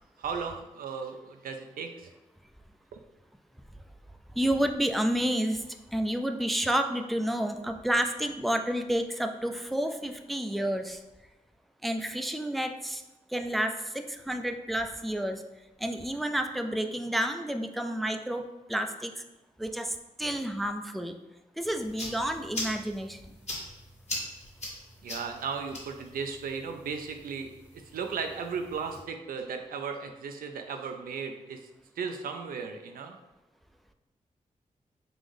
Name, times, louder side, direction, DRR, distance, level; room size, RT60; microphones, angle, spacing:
voice 1, 0.2-2.1 2.9-3.0 25.0-31.6 32.0-33.2, right 5 dB, 80° right, 5 dB, 0.4 m, -36 dB
voice 2, 4.3-11.0 11.8-13.0 13.3-15.4 15.8-19.2 19.6-21.1 21.6-23.4, right 1 dB, ahead, 6 dB, 0.3 m, -30 dB
sound 1, 21.6-29.0, left 1 dB, 50° left, 1.4 m, -42 dB
3.7 x 2.5 x 3.3 m, 1.0 s
cardioid pair, 50°, 15 cm